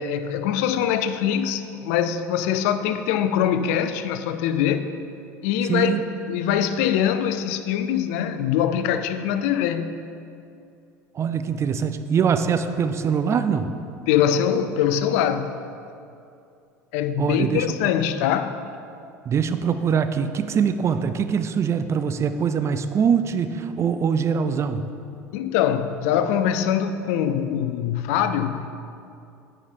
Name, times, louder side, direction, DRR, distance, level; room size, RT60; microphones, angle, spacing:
voice 1, 0.0-4.9 5.4-6.0 6.3-10.0 14.1-15.5 16.9-18.6 25.3-28.7, left 9 dB, 65° left, 10 dB, 0.4 m, -23 dB
voice 2, 5.7-6.0 11.1-13.7 17.2-17.8 19.2-24.8, right 7 dB, 35° right, 10 dB, 0.5 m, -23 dB
9.6 x 5.0 x 4.3 m, 2.5 s
hypercardioid pair, 70°, 9 cm